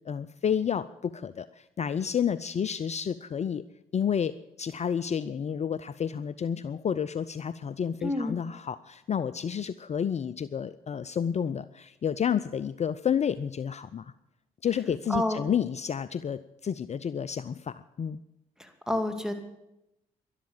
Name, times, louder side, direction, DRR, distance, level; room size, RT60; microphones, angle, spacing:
voice 1, 0.1-3.6 3.9-14.1 14.6-18.2, left 8 dB, 40° left, 15 dB, 0.5 m, -30 dB
voice 2, 8.0-8.4 15.1-15.4 18.6-19.3, left 1 dB, 5° right, 8 dB, 2.5 m, -29 dB
12.5 x 11.5 x 7.3 m, 0.92 s
hypercardioid pair, 45°, 18 cm